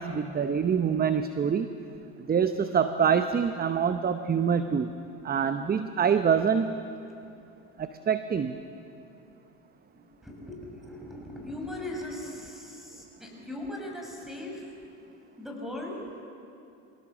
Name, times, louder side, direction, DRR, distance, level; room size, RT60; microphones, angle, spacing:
voice 1, 0.0-1.7 2.3-4.9 5.2-6.8 7.8-8.6, right 7 dB, 25° right, 10 dB, 0.9 m, -25 dB
voice 2, 10.2-14.6 15.4-16.0, left 1 dB, ahead, 0 dB, 6.5 m, -39 dB
24.0 x 18.0 x 7.4 m, 2.7 s
supercardioid pair, 85°, 36 cm